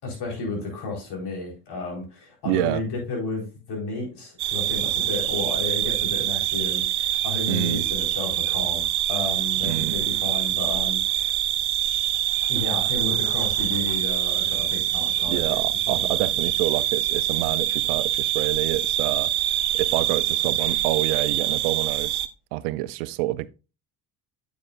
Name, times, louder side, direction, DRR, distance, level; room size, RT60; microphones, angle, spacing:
voice 1, 0.0-11.3 12.5-15.6 15.9-16.4, left 3 dB, 60° left, 4.4 m, -32 dB
voice 2, 2.4-2.8 7.5-7.9 9.6-9.9 15.3-19.3 19.7-22.2 22.5-23.5, right 17 dB, 90° right, 0.6 m, -27 dB
sound 1, 4.4-22.3, right 13 dB, 60° right, 0.8 m, -25 dB
8.6 x 7.1 x 2.5 m
supercardioid pair, 75°, 44 cm